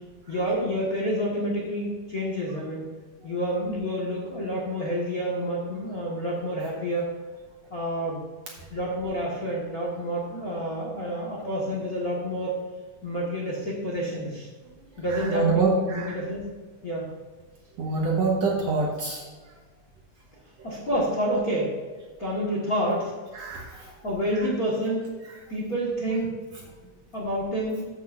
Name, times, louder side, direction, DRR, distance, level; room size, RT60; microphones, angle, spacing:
voice 1, 0.3-2.8 3.2-7.1 7.7-8.2 8.7-12.5 13.0-14.5 15.0-16.4 16.8-17.1 20.6-21.7 22.2-23.1 24.0-25.1 25.5-26.4 27.1-27.9, equal, 40° left, -4 dB, 1.5 m, -28 dB
voice 2, 15.1-16.2 17.8-19.2 23.3-23.9, right 4 dB, 60° right, -2 dB, 2.0 m, -25 dB
14.0 x 7.7 x 2.6 m, 1.4 s
omnidirectional pair, 4.0 m